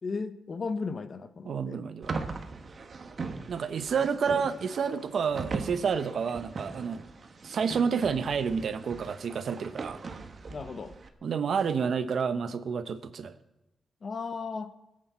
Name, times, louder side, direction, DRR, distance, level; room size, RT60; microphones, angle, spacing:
voice 1, 0.0-1.8 10.5-10.9 14.0-14.7, left 4 dB, 55° left, 11 dB, 1.1 m, -35 dB
voice 2, 1.4-2.2 3.5-7.0 7.4-10.0 11.2-13.4, right 6 dB, 75° right, 11 dB, 1.0 m, -29 dB
sound 1, 2.0-11.1, right 4 dB, 50° right, 1.5 m, -40 dB
20.0 x 8.8 x 7.6 m, 0.97 s
cardioid pair, 85°, 0 cm